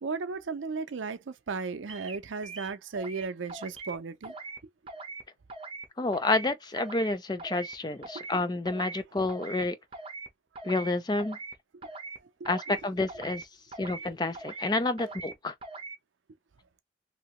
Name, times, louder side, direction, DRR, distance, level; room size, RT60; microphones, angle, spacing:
voice 1, 0.0-4.3 8.1-8.4 11.9-12.0 12.4-12.5, right 4 dB, 80° right, 0.5 m, -35 dB
sound 1, 1.9-2.2 2.4-3.2 3.5-4.0 4.2-4.6 4.9-5.2 5.5-5.9 6.1-6.5 6.8-7.1 7.4-7.7 8.0-8.4 8.7-9.0 9.3-9.6 9.9-10.3 10.6-10.9 11.2-11.5 11.8-12.2 12.4-12.8 13.1-13.4 13.7-14.1 14.3-14.7 15.0-15.3 15.6-16.0, right 3 dB, 30° right, 0.8 m, -41 dB
voice 2, 6.0-9.8 10.6-11.4 12.5-13.5 13.8-15.5, left 2 dB, 20° left, 0.4 m, -29 dB
2.9 x 2.7 x 3.0 m
head